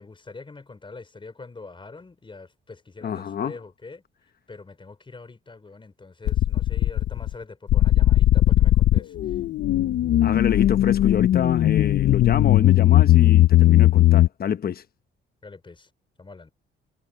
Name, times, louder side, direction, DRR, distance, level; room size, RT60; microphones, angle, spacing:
voice 1, 0.0-4.0 4.5-9.4 15.4-15.9 16.2-16.5, left 3 dB, 25° left, 5.1 m, -44 dB
voice 2, 3.0-3.6 10.2-14.8, left 8 dB, 50° left, 1.0 m, -26 dB
sound 1, 6.3-7.3 7.7-14.3, left 14 dB, 65° left, 0.6 m, -18 dB
cardioid pair, 90°, 20 cm